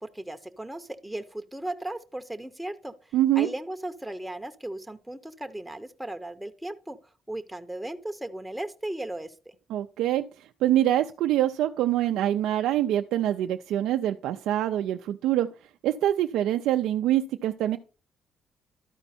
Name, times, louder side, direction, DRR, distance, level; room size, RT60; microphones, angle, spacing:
voice 1, 0.0-2.9 3.4-7.0 7.3-9.3, right 1 dB, 5° right, 6 dB, 0.6 m, -36 dB
voice 2, 3.1-3.5 9.7-10.2 10.6-15.5 15.8-17.8, right 12 dB, 85° right, 7 dB, 0.3 m, -25 dB
12.0 x 4.5 x 4.2 m, 0.36 s
cardioid pair, 90°, 0 cm